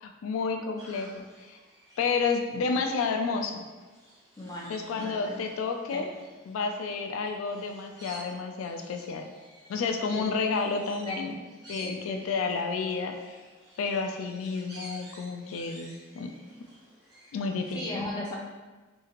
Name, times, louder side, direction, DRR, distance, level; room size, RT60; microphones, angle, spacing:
voice 1, 0.0-1.6 2.0-3.7 4.7-6.1 6.5-9.3 9.7-11.3 11.7-13.4 13.8-16.3 17.3-18.0, left 4 dB, 90° left, 5 dB, 0.3 m, -31 dB
sound 1, 0.8-17.8, right 1 dB, 20° right, 0.8 m, -52 dB
voice 2, 4.4-5.5 5.9-6.1 10.1-11.2 11.8-12.3 17.7-18.3, left 2 dB, 20° left, -2 dB, 0.4 m, -38 dB
2.8 x 2.7 x 2.4 m, 1.3 s
head